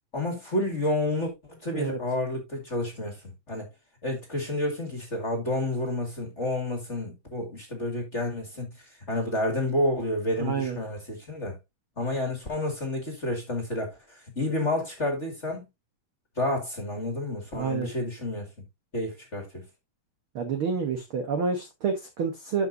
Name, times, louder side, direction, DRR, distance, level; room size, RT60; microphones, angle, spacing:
voice 1, 0.1-3.7 4.0-11.6 12.0-15.7 16.4-18.5 18.9-19.6, left 1 dB, 25° left, 2.1 m, -30 dB
voice 2, 10.4-10.8 17.5-17.9 20.3-22.7, right 5 dB, 60° right, 1.3 m, -28 dB
12.0 x 5.7 x 2.7 m
omnidirectional pair, 4.0 m